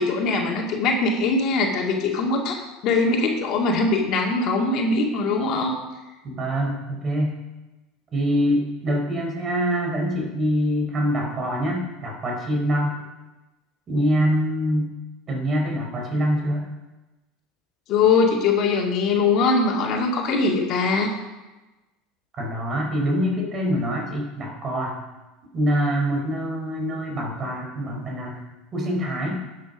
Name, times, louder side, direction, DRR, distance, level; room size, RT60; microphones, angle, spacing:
voice 1, 0.0-5.8 17.9-21.1, left 3 dB, 50° left, 1 dB, 2.3 m, -22 dB
voice 2, 6.2-7.3 8.1-13.0 13.9-14.9 15.3-16.7 22.3-25.0 25.5-28.4 28.7-29.4, equal, 35° right, 1 dB, 4.3 m, -24 dB
12.0 x 8.2 x 5.2 m, 1.1 s
hypercardioid pair, 80°, 0 cm